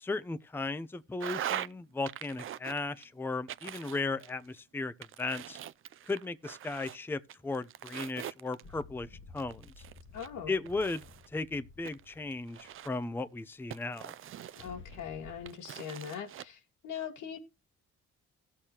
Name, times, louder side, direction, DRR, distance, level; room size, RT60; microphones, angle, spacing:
voice 1, 0.0-5.6 6.1-9.8 10.5-14.1, left 3 dB, 5° left, 0.5 m, -36 dB
sound 1, 1.2-1.7 2.1-3.0 3.5-4.6 5.0-7.0 7.3-8.8 9.4-11.3 11.8-13.1 13.7-15.0 15.5-16.4, right 10 dB, 45° right, 0.4 m, -42 dB
sound 2, 8.6-13.2 14.1-15.5, left 4 dB, 40° left, 1.2 m, -53 dB
voice 2, 10.1-10.5 14.6-17.4, left 8 dB, 85° left, 1.5 m, -41 dB
16.0 x 6.5 x 2.9 m
cardioid pair, 90°, 30 cm